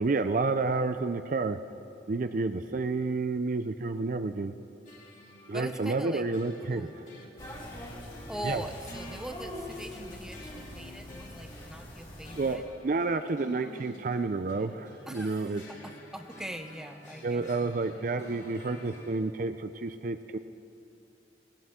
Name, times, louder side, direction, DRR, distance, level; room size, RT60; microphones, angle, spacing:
voice 1, 0.0-1.6 2.1-4.5 5.5-6.9 8.4-8.6 12.4-12.6 12.8-15.6 17.2-20.4, right 3 dB, 45° right, 9 dB, 0.4 m, -30 dB
sound 1, 4.9-19.2, left 1 dB, 45° left, 2.3 m, -50 dB
voice 2, 5.5-6.3 6.7-7.0 8.3-12.6 15.1-17.7, right 1 dB, 5° right, 6 dB, 0.7 m, -42 dB
sound 2, 7.4-12.6, left 1 dB, 25° left, 2.5 m, -43 dB
18.5 x 17.0 x 3.7 m, 2.7 s
head